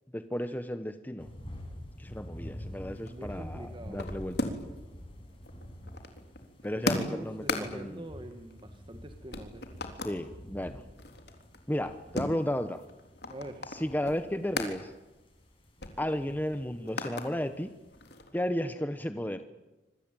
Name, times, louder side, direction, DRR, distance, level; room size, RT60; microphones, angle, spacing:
voice 1, 0.1-1.3 2.0-4.5 6.6-8.1 10.0-10.8 11.7-12.8 13.7-14.9 16.0-17.7 18.3-19.4, left 1 dB, 10° left, 9 dB, 1.0 m, -33 dB
sound 1, 1.2-18.1, equal, 30° left, 7.9 m, -48 dB
voice 2, 2.8-4.1 6.8-9.6 13.3-13.8, right 1 dB, 30° right, 6 dB, 1.8 m, -45 dB
sound 2, 2.9-4.8 5.1-9.0 9.3-10.2 10.6-14.8 15.1-15.3 15.5-17.3 17.7-18.5, left 2 dB, 65° left, 3.7 m, -38 dB
26.5 x 24.0 x 9.1 m, 1.1 s
head